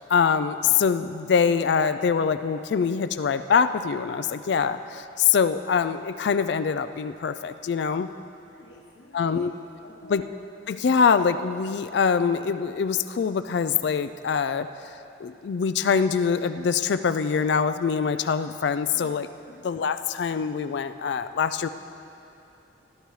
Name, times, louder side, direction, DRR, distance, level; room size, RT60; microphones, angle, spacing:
voice 1, 0.0-8.1 9.1-9.5 10.1-10.2 10.7-14.9 15.2-19.3 19.6-21.7, left 6 dB, 60° left, 11 dB, 0.3 m, -24 dB
voice 2, 8.5-9.6 9.8-10.4 18.9-19.7, left 1 dB, 75° left, -5 dB, 1.1 m, -49 dB
19.0 x 11.5 x 3.2 m, 2.7 s
head